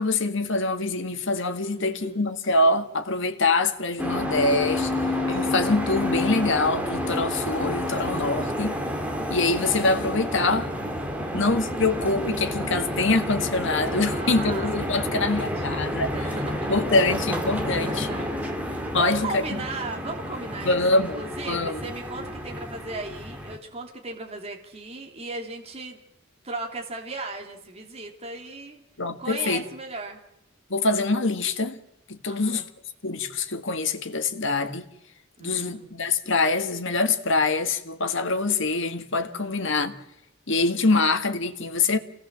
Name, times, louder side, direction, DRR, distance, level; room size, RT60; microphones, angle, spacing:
voice 1, 0.0-4.9 5.3-8.8 9.3-10.7 11.3-16.3 16.7-18.1 18.9-19.4 20.6-21.8 29.0-29.6 30.7-31.8 32.1-32.6 33.0-34.9 35.4-39.9 40.5-42.0, left 3 dB, 65° left, 1.9 m, -24 dB
voice 2, 1.6-2.2 4.9-5.4 11.2-11.8 14.0-15.5 16.1-16.7 17.8-26.0 26.4-28.8 29.2-30.2 32.3-32.6 35.4-35.9 39.3-39.5, right 3 dB, 30° right, 3.0 m, -37 dB
sound 1, 4.0-23.6, left 1 dB, 5° right, 3.3 m, -29 dB
27.5 x 18.5 x 7.5 m
head